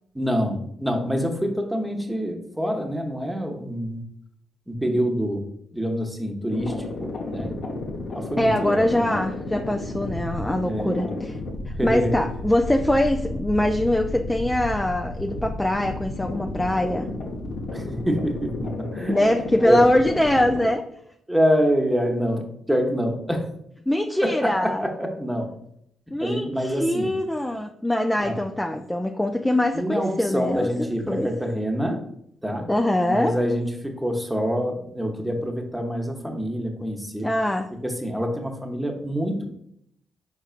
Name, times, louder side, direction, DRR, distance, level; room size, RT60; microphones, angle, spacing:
voice 1, 0.1-4.0 4.7-7.6 8.1-9.1 10.6-11.0 11.7-12.2 17.7-19.2 19.6-19.8 21.3-23.5 24.2-25.5 26.2-27.1 28.2-28.4 29.7-32.0 32.4-32.7 33.1-37.3 37.8-39.5, equal, 5° right, 3 dB, 1.0 m, -26 dB
sound 1, 6.5-20.6, left 2 dB, 70° left, 0.9 m, -32 dB
voice 2, 8.4-11.4 11.7-17.1 19.1-20.9 23.9-24.8 26.1-31.3 32.7-33.4 37.2-37.7, left 1 dB, 10° left, 4 dB, 0.4 m, -23 dB
4.7 x 4.3 x 2.5 m, 0.72 s
supercardioid pair, 50°, 0 cm